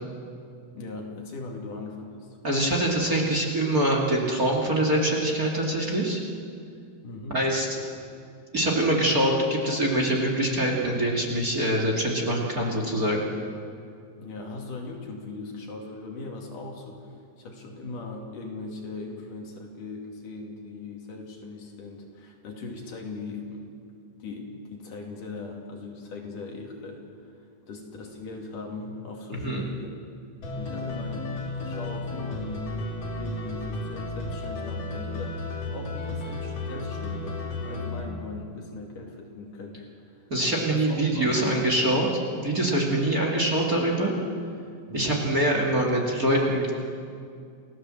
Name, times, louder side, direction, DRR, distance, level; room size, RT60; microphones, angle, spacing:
voice 1, 0.7-2.3 7.0-7.4 14.2-17.1 17.4-23.8 24.2-27.3 27.7-29.9 30.5-31.3 31.6-32.8 33.1-40.3 40.7-41.6 44.9-45.3, left 3 dB, 65° left, 0 dB, 4.0 m, -39 dB
voice 2, 2.4-6.2 7.3-7.8 8.5-13.3 29.4-29.6 40.3-44.1 44.9-46.7, right 1 dB, 30° right, 0 dB, 2.3 m, -24 dB
sound 1, 30.4-38.0, left 2 dB, 45° left, 3.5 m, -33 dB
29.0 x 16.0 x 7.7 m, 2.4 s
omnidirectional pair, 4.2 m